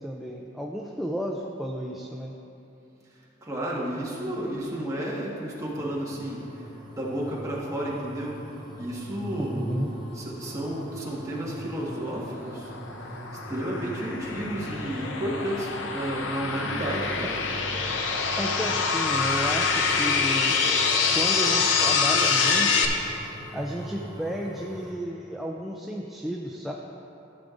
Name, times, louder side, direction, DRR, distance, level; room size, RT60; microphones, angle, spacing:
voice 1, 0.0-2.4 9.4-9.9 18.4-20.6 21.1-22.9 23.5-26.7, equal, ahead, -1 dB, 0.4 m, -32 dB
voice 2, 3.4-6.4 6.9-8.4 8.8-9.7 10.2-12.7 13.5-17.3, right 1 dB, 15° right, -6 dB, 1.5 m, -32 dB
sound 1, 5.7-24.9, right 1 dB, 45° left, 1.5 m, -41 dB
sound 2, 12.0-22.9, left 5 dB, 90° left, 0.7 m, -25 dB
14.0 x 7.3 x 2.5 m, 2.8 s
head